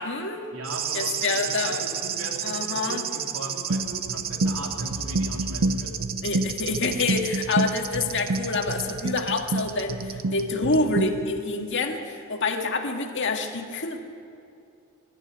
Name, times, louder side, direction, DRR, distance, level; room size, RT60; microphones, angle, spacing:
voice 1, 0.0-0.5 0.9-1.8 2.4-3.0 6.2-14.0, left 3 dB, 55° left, 4 dB, 1.9 m, -27 dB
voice 2, 0.5-5.9, right 1 dB, 70° right, 0 dB, 3.3 m, -38 dB
sound 1, 0.6-10.4 10.7-10.8, right 10 dB, 45° right, 0.8 m, -33 dB
sound 2, 3.7-11.4, right 2 dB, 90° right, 0.6 m, -29 dB
sound 3, 4.5-10.4, equal, 5° right, 5.3 m, -43 dB
22.0 x 12.5 x 9.7 m, 2.7 s
head